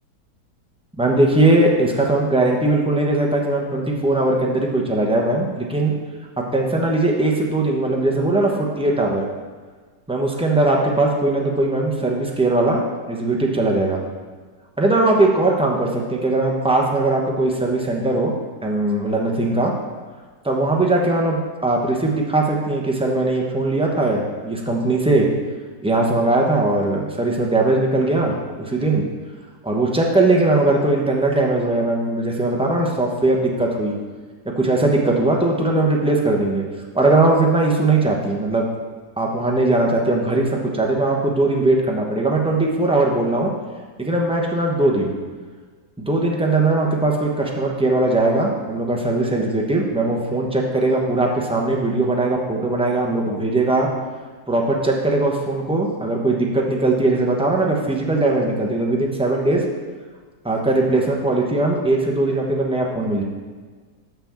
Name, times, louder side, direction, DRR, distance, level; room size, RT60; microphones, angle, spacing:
voice 1, 1.0-5.9 6.5-9.2 10.1-12.8 13.1-14.0 14.8-18.3 18.6-19.7 20.4-25.3 25.8-29.0 29.6-33.9 34.6-36.6 36.9-38.7 39.2-43.5 44.0-45.1 46.0-53.9 54.5-59.6 60.4-63.2, right 2 dB, 5° right, -1 dB, 0.4 m, -19 dB
5.9 x 5.9 x 7.0 m, 1.5 s
omnidirectional pair, 1.9 m